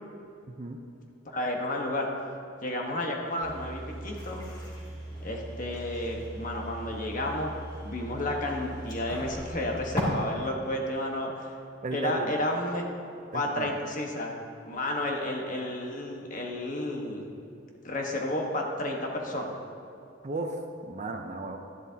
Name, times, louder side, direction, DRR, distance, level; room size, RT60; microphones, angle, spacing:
voice 1, 0.5-0.8 11.8-12.4 13.3-13.7 20.2-20.6 20.9-21.6, right 2 dB, 35° right, 4 dB, 0.7 m, -34 dB
voice 2, 1.2-2.1 2.6-4.4 5.2-7.5 7.8-11.5 11.9-12.8 13.3-14.3 14.6-17.3 17.8-19.6, left 1 dB, 40° left, 0 dB, 1.3 m, -31 dB
sound 1, 3.4-10.0, equal, 20° left, 2.4 m, -39 dB
13.0 x 11.0 x 2.8 m, 2.6 s
head